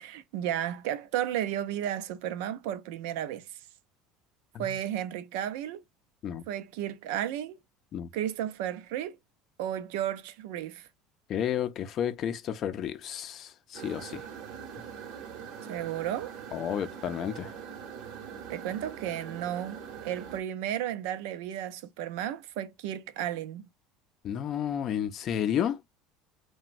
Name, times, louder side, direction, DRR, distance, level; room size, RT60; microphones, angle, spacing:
voice 1, 0.0-3.6 4.6-5.8 6.5-7.6 8.1-9.2 9.6-10.9 15.6-16.3 18.5-23.6, right 11 dB, 80° right, 0.5 m, -33 dB
voice 2, 11.3-14.3 16.5-17.5 24.2-25.8, left 9 dB, 45° left, 0.5 m, -31 dB
sound 1, 13.7-20.4, right 7 dB, 65° right, 1.0 m, -42 dB
2.9 x 2.2 x 2.4 m
supercardioid pair, 120°, 0 cm